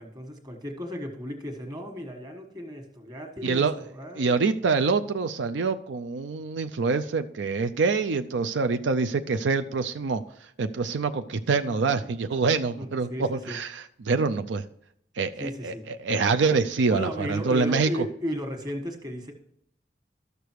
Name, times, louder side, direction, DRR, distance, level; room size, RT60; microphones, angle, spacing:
voice 1, 0.0-4.4 11.8-12.1 12.4-13.6 15.4-15.8 16.9-19.3, equal, 20° right, 3 dB, 1.4 m, -35 dB
voice 2, 3.4-3.9 4.1-10.2 10.6-14.6 15.2-18.1, right 4 dB, 80° right, 9 dB, 0.5 m, -26 dB
12.5 x 6.7 x 4.7 m, 0.70 s
head